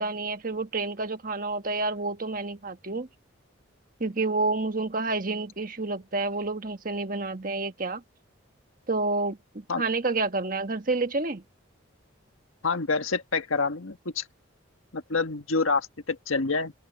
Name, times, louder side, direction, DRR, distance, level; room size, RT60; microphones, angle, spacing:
voice 1, 0.0-3.1 4.0-8.0 8.9-11.4, right 3 dB, 40° right, 1.3 m, -29 dB
voice 2, 12.6-14.2 14.9-16.7, left 4 dB, 85° left, 1.5 m, -27 dB
open air
head